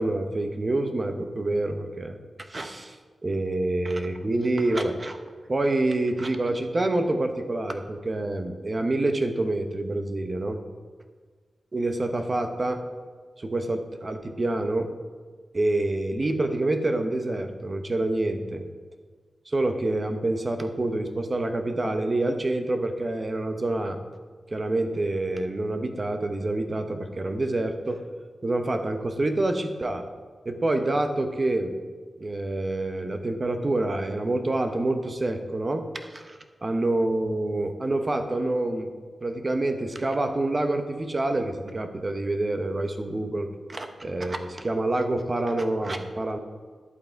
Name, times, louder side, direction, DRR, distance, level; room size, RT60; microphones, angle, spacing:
voice 1, 0.0-3.0 3.2-5.2 5.5-10.6 11.7-12.8 13.4-14.9 15.5-18.6 19.5-24.0 24.5-28.0 28.4-30.1 30.4-31.8 32.2-38.9 39.2-46.4, right 2 dB, 40° right, 6 dB, 0.9 m, -27 dB
11.0 x 5.6 x 4.5 m, 1.5 s
cardioid pair, 55°, 0 cm